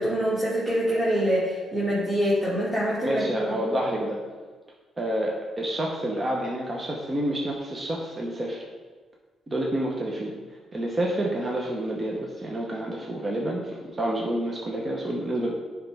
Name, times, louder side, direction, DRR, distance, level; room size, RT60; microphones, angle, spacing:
voice 1, 0.0-3.5, equal, 5° right, -9 dB, 2.0 m, -25 dB
voice 2, 3.0-4.2 5.0-8.6 9.5-10.4 10.7-15.5, right 1 dB, 25° right, -2 dB, 0.9 m, -28 dB
9.9 x 3.5 x 3.5 m, 1.4 s
cardioid pair, 90°, 0 cm